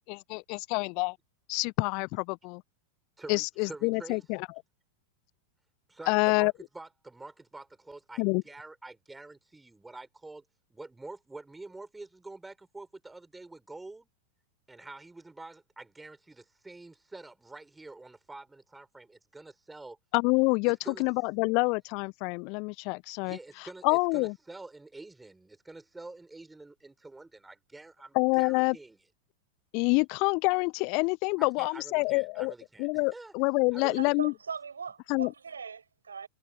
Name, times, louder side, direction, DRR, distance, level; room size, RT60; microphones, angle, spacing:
voice 1, 0.1-1.2 1.5-2.6 3.3-4.5 6.1-6.5 8.2-8.4 20.1-23.4 23.8-24.3 28.1-28.8 29.7-32.5 32.8-34.3 35.1-35.3, left 31 dB, 45° left, 0.7 m, -27 dB
voice 2, 3.2-4.2 5.9-10.4 10.7-14.1 14.7-20.0 20.8-21.0 23.2-29.0 31.4-33.3 33.7-34.2, right 2 dB, 10° right, 5.8 m, -47 dB
voice 3, 34.0-36.3, right 6 dB, 70° right, 7.8 m, -40 dB
figure-of-eight pair, 90°, 0 cm